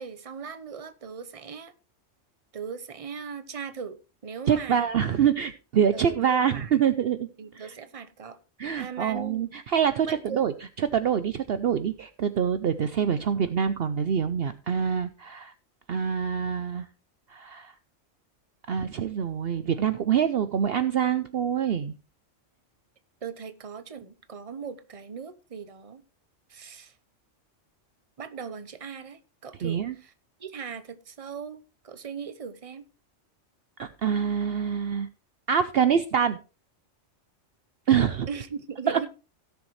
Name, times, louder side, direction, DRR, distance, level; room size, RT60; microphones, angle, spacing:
voice 1, 0.0-1.7 2.5-4.8 5.9-6.7 7.4-8.4 8.7-9.5 10.0-10.5 23.2-26.0 26.5-26.9 28.2-30.1 30.4-32.9 38.3-39.1, right 6 dB, 30° right, 1.0 m, -39 dB
voice 2, 4.5-7.2 8.6-10.5 10.9-15.5 15.9-16.9 17.3-17.7 18.7-21.9 29.6-29.9 33.8-35.1 35.5-36.4 37.9-38.3 38.9-39.0, right 8 dB, 60° right, 0.8 m, -25 dB
17.0 x 7.0 x 3.2 m
omnidirectional pair, 1.3 m